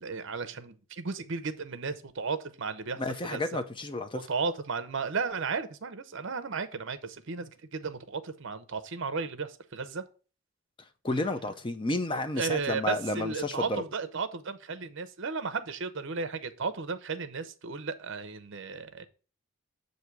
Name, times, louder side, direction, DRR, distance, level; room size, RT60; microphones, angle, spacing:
voice 1, 0.0-3.0 3.3-3.4 4.1-10.0 12.4-19.0, right 5 dB, 55° right, 0.6 m, -34 dB
voice 2, 3.0-4.3 11.0-13.8, left 2 dB, 20° left, 0.5 m, -31 dB
8.1 x 2.7 x 5.8 m
head